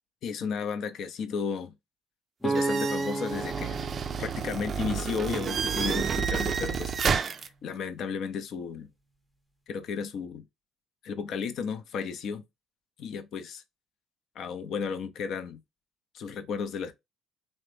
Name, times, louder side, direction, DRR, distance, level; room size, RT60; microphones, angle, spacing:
voice 1, 0.2-1.7 2.4-3.8 4.2-7.4 7.6-8.9 9.7-10.4 11.0-12.4 13.0-13.6 14.4-15.6 16.1-16.9, left 6 dB, 60° left, 0.5 m, -34 dB
sound 1, 2.4-6.2, right 2 dB, 5° left, 0.6 m, -33 dB
sound 2, 2.5-7.5, right 6 dB, 45° right, 0.4 m, -30 dB
3.1 x 2.1 x 3.2 m
hypercardioid pair, 55°, 0 cm